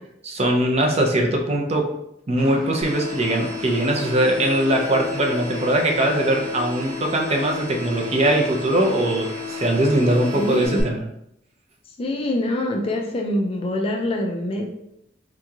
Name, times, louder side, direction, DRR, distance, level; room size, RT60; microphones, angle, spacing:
voice 1, 0.2-1.9 2.3-11.0, right 1 dB, 30° right, 2 dB, 0.4 m, -21 dB
Bird, 2.4-10.7, right 1 dB, 80° right, 0.6 m, -40 dB
sound 1, 2.8-10.8, left 4 dB, 50° right, 0.9 m, -33 dB
voice 2, 10.4-10.8 12.0-14.7, left 1 dB, 30° left, 2 dB, 0.3 m, -25 dB
3.6 x 2.9 x 2.3 m, 0.79 s
head